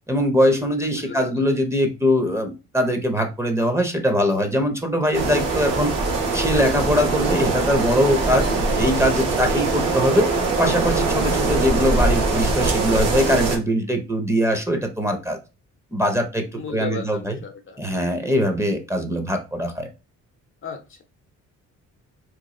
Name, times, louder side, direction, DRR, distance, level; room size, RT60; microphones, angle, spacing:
voice 1, 0.1-5.9 6.3-8.5 8.8-10.3 10.6-15.4 15.9-17.4 17.8-19.9, equal, 10° right, 5 dB, 0.7 m, -22 dB
voice 2, 0.9-1.5 16.5-17.8 20.6-21.0, left 5 dB, 40° left, 6 dB, 0.6 m, -35 dB
sound 1, 5.1-13.6, right 3 dB, 55° right, 1.1 m, -22 dB
3.0 x 2.4 x 3.7 m, 0.28 s
cardioid pair, 90°, 30 cm